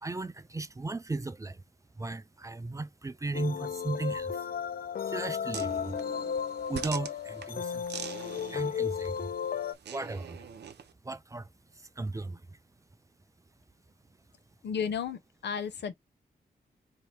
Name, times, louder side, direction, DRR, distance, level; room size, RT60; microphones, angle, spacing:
voice 1, 0.0-1.6 1.9-4.5 5.1-6.0 6.7-7.9 8.5-9.3 9.9-10.6 11.0-12.6, right 2 dB, 20° right, 0.4 m, -36 dB
sound 1, 3.3-9.7, left 7 dB, 60° left, 0.4 m, -34 dB
sound 2, 5.5-10.9, right 8 dB, 75° right, 0.7 m, -44 dB
voice 2, 14.6-15.9, left 7 dB, 90° left, 0.9 m, -33 dB
4.3 x 2.8 x 3.3 m
wide cardioid pair, 120°, 17 cm